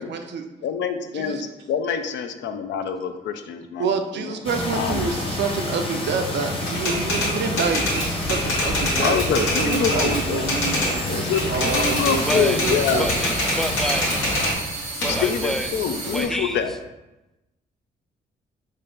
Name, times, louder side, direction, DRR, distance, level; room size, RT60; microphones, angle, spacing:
voice 1, 0.0-0.4 1.1-1.4 3.8-13.3, right 5 dB, 65° right, 6 dB, 0.5 m, -28 dB
voice 2, 0.6-1.4 1.7-4.3 4.7-5.3 9.0-10.5 11.1-13.1 15.1-16.7, left 7 dB, 70° left, 7 dB, 0.4 m, -26 dB
sound 1, 4.4-14.5, left 1 dB, 30° left, 1.0 m, -29 dB
sound 2, 4.9-8.2 9.8-16.2, right 3 dB, 85° right, 0.9 m, -35 dB
Typewriter, 6.7-10.9 11.3-14.5 15.0-16.7, left 1 dB, 85° left, 1.1 m, -25 dB
voice 3, 12.2-12.6 12.9-14.2 15.0-15.7 16.1-16.8, equal, ahead, 7 dB, 0.3 m, -28 dB
3.7 x 2.1 x 3.8 m, 0.98 s
supercardioid pair, 50°, 20 cm